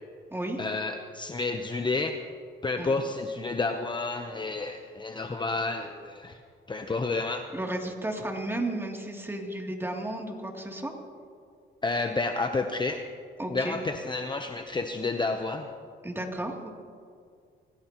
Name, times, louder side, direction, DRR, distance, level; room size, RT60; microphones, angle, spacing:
voice 1, 0.6-2.2 2.6-6.4 6.7-7.5 11.8-13.0 13.5-15.7, left 3 dB, 25° left, 6 dB, 0.8 m, -30 dB
voice 2, 7.5-10.9 13.4-13.8 16.0-16.7, right 1 dB, 10° right, 0 dB, 2.9 m, -33 dB
25.5 x 17.0 x 3.0 m, 2.2 s
cardioid pair, 90°, 20 cm